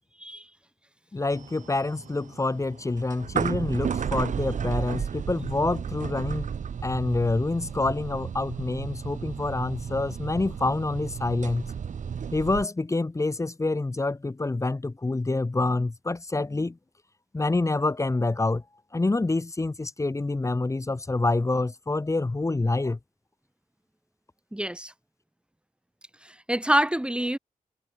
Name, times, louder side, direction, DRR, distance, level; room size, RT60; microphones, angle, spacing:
voice 1, 1.1-6.5 6.8-11.7 12.3-16.8 17.3-18.6 18.9-23.0, left 2 dB, 25° left, 3.0 m, -27 dB
sound 1, 1.3-12.7, right 7 dB, 70° right, 7.0 m, -33 dB
voice 2, 24.5-24.9 26.2-27.4, right 1 dB, 5° right, 3.5 m, -26 dB
wide cardioid pair, 110°, 13 cm